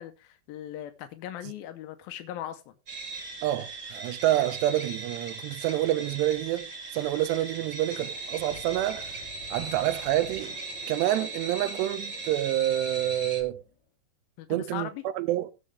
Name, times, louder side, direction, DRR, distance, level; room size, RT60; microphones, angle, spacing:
voice 1, 0.0-2.6 14.4-15.0, left 11 dB, 85° left, 2.1 m, -39 dB
sound 1, 2.9-13.4, right 3 dB, 40° right, 2.0 m, -38 dB
voice 2, 3.4-9.1 9.5-10.6 10.9-13.6 14.5-15.5, right 14 dB, 80° right, 2.8 m, -28 dB
sound 2, 7.9-13.8, left 3 dB, 40° left, 4.1 m, -50 dB
17.5 x 6.6 x 3.3 m
omnidirectional pair, 5.3 m